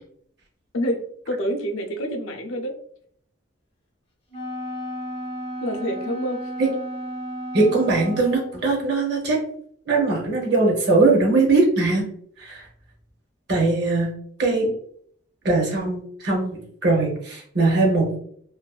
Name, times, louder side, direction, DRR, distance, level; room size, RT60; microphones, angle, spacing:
voice 1, 0.7-2.8 5.6-6.5, equal, 85° left, 3 dB, 0.5 m, -27 dB
Wind instrument woodwind instrument, 4.3-8.6, equal, 30° left, 0.4 m, -33 dB
voice 2, 7.5-9.4 9.9-12.0 12.4-12.6 13.5-14.1 14.4-14.7 15.4-18.2, right 3 dB, 55° right, 0 dB, 0.7 m, -20 dB
2.5 x 2.2 x 2.3 m, 0.63 s
head